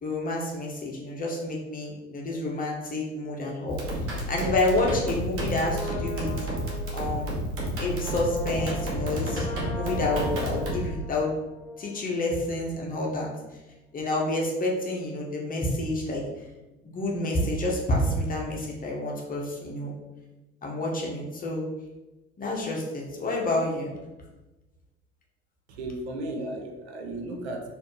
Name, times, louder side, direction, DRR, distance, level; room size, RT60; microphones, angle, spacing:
voice 1, 0.0-6.3 6.9-7.3 7.8-9.5 9.7-11.3 11.8-13.3 13.9-16.2 16.8-19.9 20.6-21.7 22.4-23.9, left 2 dB, 25° left, -2 dB, 0.9 m, -29 dB
sound 1, 3.7-10.9, right 1 dB, 40° right, 1.2 m, -31 dB
Brass instrument, 5.5-12.3 12.6-12.7, left 2 dB, 50° left, 0.8 m, -38 dB
voice 2, 25.7-27.7, right 1 dB, 65° right, 3 dB, 0.7 m, -35 dB
4.2 x 2.6 x 3.1 m, 1.1 s
figure-of-eight pair, 65°, 35 cm